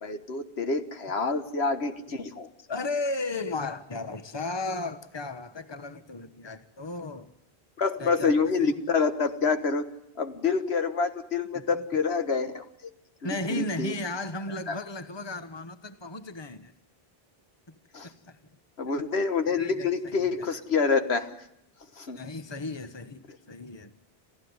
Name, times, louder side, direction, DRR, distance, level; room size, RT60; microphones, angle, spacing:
voice 1, 0.0-2.5 7.8-9.9 10.2-12.7 13.5-13.9 14.7-14.8 17.9-18.1 18.8-21.4 22.0-22.2, left 4 dB, 85° left, 9 dB, 1.7 m, -27 dB
voice 2, 2.7-7.3 8.0-8.7 11.5-11.8 13.2-16.7 17.7-17.8 18.0-18.4 19.5-20.3 22.2-23.9, left 2 dB, 25° left, 11 dB, 1.2 m, -35 dB
28.0 x 15.5 x 9.6 m, 0.81 s
omnidirectional pair, 1.0 m